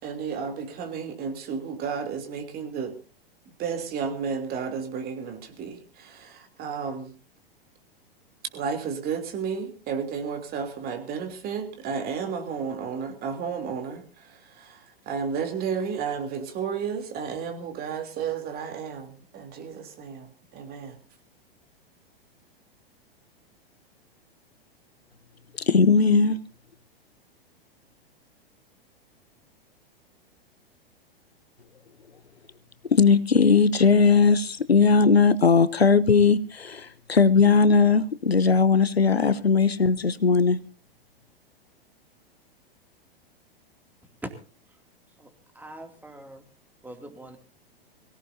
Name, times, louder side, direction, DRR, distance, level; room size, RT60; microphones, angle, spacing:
voice 1, 0.0-2.9 3.6-7.1 8.5-21.0, right 6 dB, 30° right, 3.2 m, -32 dB
voice 2, 25.7-26.4 32.9-40.6, left 5 dB, 90° left, 1.0 m, -19 dB
voice 3, 45.2-46.5 46.8-47.4, right 1 dB, 5° right, 2.6 m, -42 dB
24.0 x 17.5 x 2.7 m
figure-of-eight pair, 105°, 30 cm